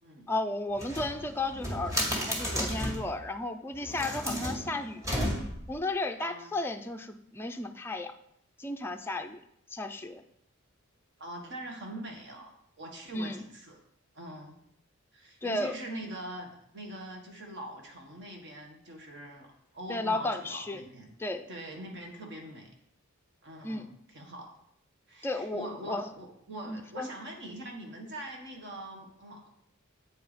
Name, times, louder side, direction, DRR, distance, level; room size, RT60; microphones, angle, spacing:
voice 1, 0.3-5.3 5.7-8.1 8.6-9.4 9.7-10.2 13.1-13.4 15.4-15.8 19.9-20.8 21.2-21.5 23.6-23.9 25.2-26.1 26.7-27.1, left 2 dB, 10° left, 5 dB, 0.4 m, -34 dB
sound 1, 0.7-3.1 3.8-5.7, equal, 15° right, 1.8 m, -33 dB
voice 2, 6.2-6.5 11.2-12.5 12.8-13.8 14.1-14.5 15.1-21.1 21.5-22.7 23.4-24.5 25.1-29.5, right 1 dB, 55° right, 2 dB, 1.6 m, -43 dB
8.4 x 4.6 x 5.1 m, 0.71 s
head